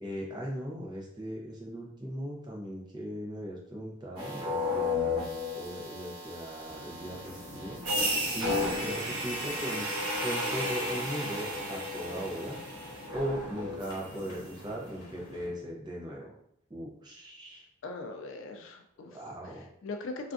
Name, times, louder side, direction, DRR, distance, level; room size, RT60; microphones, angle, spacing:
voice 1, 0.0-5.1 5.5-7.8 8.3-9.9 10.2-12.6 13.1-16.4 16.7-17.6 19.1-19.7, equal, 20° right, -2 dB, 0.6 m, -38 dB
sound 1, 4.2-14.3, left 1 dB, 75° right, 0.9 m, -33 dB
sound 2, 6.6-15.5, left 1 dB, 85° left, 0.9 m, -49 dB
voice 2, 17.8-19.2 19.4-19.5 19.8-20.3, left 3 dB, 60° left, 4 dB, 0.4 m, -40 dB
3.3 x 2.4 x 2.5 m, 0.72 s
head